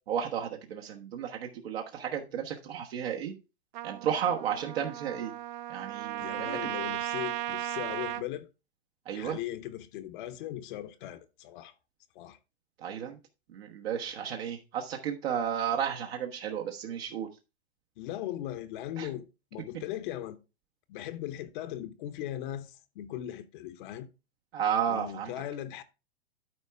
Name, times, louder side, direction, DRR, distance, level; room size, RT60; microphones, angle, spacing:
voice 1, 0.1-3.3 3.8-5.3 5.7-6.7 9.0-9.4 12.8-13.2 13.5-17.3 19.0-19.1 24.5-25.3, right 8 dB, 65° right, 1.3 m, -33 dB
Trumpet, 3.7-8.3, right 14 dB, 45° right, 0.5 m, -36 dB
voice 2, 6.2-8.5 9.1-11.7 12.1-12.4 18.0-19.3 19.5-20.4 20.9-24.1 24.9-25.8, left 12 dB, 50° left, 0.9 m, -38 dB
12.5 x 4.6 x 3.5 m
hypercardioid pair, 105°, 33 cm